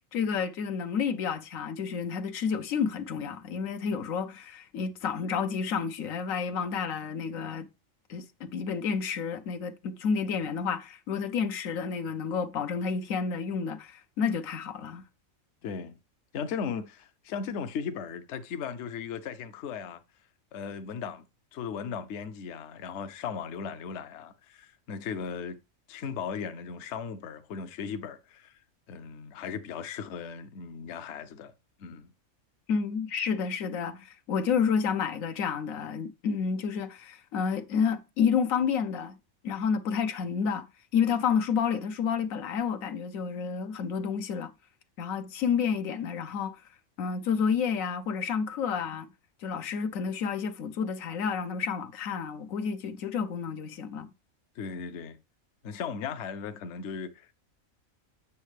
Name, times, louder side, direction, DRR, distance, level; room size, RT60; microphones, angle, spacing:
voice 1, 0.1-7.7 8.1-15.0 32.7-39.2 39.4-40.7 40.9-44.5 45.0-46.6 47.0-49.1 49.4-54.1, left 6 dB, 80° left, 1.2 m, -30 dB
voice 2, 15.6-15.9 16.3-20.0 20.5-21.3 21.5-25.6 25.9-28.6 28.9-31.5 31.8-32.1 54.6-55.2 55.6-57.3, left 6 dB, 65° left, 1.0 m, -37 dB
8.3 x 6.4 x 3.3 m
omnidirectional pair, 1.4 m